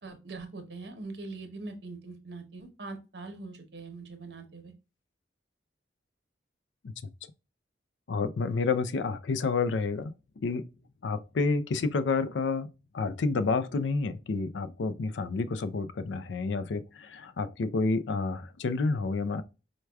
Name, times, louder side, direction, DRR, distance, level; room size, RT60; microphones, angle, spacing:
voice 1, 0.0-4.7, right 3 dB, 65° right, 0.9 m, -42 dB
voice 2, 8.1-10.7 11.0-12.7 12.9-19.4, left 4 dB, 80° left, 0.4 m, -29 dB
4.6 x 2.2 x 2.2 m
head